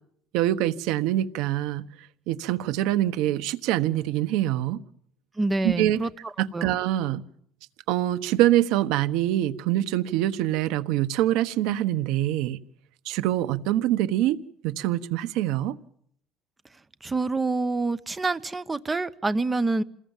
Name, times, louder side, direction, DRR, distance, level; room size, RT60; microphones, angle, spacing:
voice 1, 0.3-1.8 2.3-4.8 5.6-6.0 6.4-7.2 7.9-12.6 13.1-14.4 14.6-15.7, right 13 dB, 80° right, 13 dB, 1.2 m, -24 dB
voice 2, 5.4-6.7 17.0-19.8, right 3 dB, 15° right, 15 dB, 0.9 m, -27 dB
27.5 x 20.5 x 7.4 m, 0.66 s
cardioid pair, 140°, 0 cm